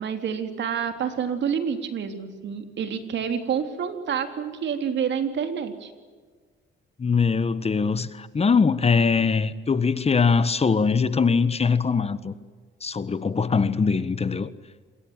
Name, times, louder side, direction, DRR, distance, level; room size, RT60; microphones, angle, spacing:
voice 1, 0.0-5.9, right 7 dB, 65° right, 3.5 m, -28 dB
voice 2, 7.0-12.3 12.8-14.5, left 5 dB, 30° left, 1.4 m, -22 dB
27.0 x 22.0 x 8.9 m
cardioid pair, 90°, 20 cm